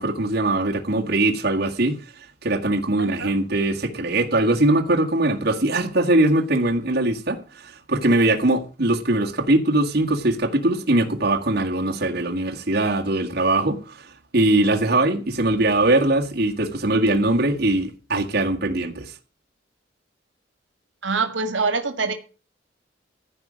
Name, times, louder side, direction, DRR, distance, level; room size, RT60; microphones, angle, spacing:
voice 1, 0.0-19.1, right 2 dB, 55° right, 1.8 m, -21 dB
voice 2, 3.0-3.3 21.0-22.1, right 4 dB, 85° right, 1.8 m, -24 dB
14.5 x 5.1 x 8.7 m
head